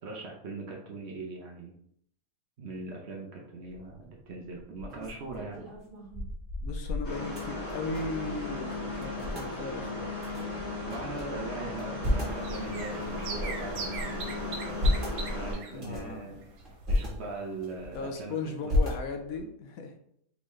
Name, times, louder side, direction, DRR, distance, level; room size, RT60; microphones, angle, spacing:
voice 1, 0.0-1.7 2.6-5.7 10.9-14.8 15.3-16.5 16.9-18.4 18.6-18.8, right 3 dB, 55° right, 0 dB, 0.9 m, -40 dB
sound 1, 3.7-4.0 4.5-8.3 8.5-8.6 8.9-9.5 10.2-11.2 11.7-12.4 13.0-14.0 14.5-15.2 15.7-16.2 16.6-17.1 17.6-18.2 18.7-19.4, left 1 dB, 35° right, 1.4 m, -32 dB
voice 2, 6.6-10.1 15.7-16.3 17.9-19.9, left 4 dB, 75° left, 4 dB, 1.1 m, -37 dB
sound 2, 7.0-15.5, left 2 dB, 50° left, 1.6 m, -36 dB
sound 3, 12.3-17.4 17.7-17.8 18.1-18.2, right 4 dB, 75° right, 1.2 m, -41 dB
4.1 x 3.5 x 3.1 m, 0.70 s
omnidirectional pair, 1.5 m